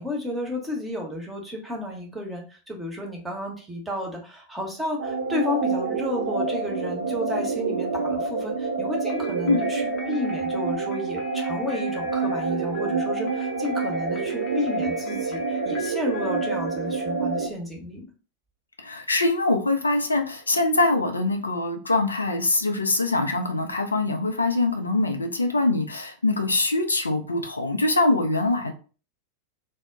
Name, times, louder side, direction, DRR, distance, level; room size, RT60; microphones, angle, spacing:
voice 1, 0.0-18.1, left 2 dB, 5° right, 0 dB, 0.8 m, -32 dB
sound 1, 5.0-17.5, right 4 dB, 70° right, 0.4 m, -27 dB
sound 2, 9.1-17.4, left 2 dB, 35° left, 0.6 m, -44 dB
voice 2, 18.8-28.7, left 2 dB, 80° left, 5 dB, 0.4 m, -23 dB
2.1 x 2.0 x 3.6 m, 0.37 s
figure-of-eight pair, 90°, 0 cm